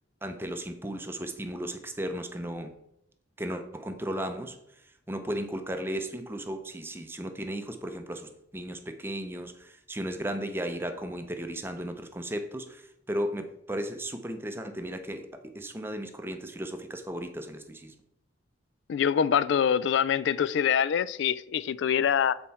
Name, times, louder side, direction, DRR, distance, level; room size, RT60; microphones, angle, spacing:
voice 1, 0.2-2.7 3.4-4.6 4.8-17.9, right 1 dB, 10° right, 0.6 m, -35 dB
voice 2, 18.9-22.4, left 8 dB, 70° left, 0.3 m, -25 dB
7.5 x 4.4 x 4.1 m
head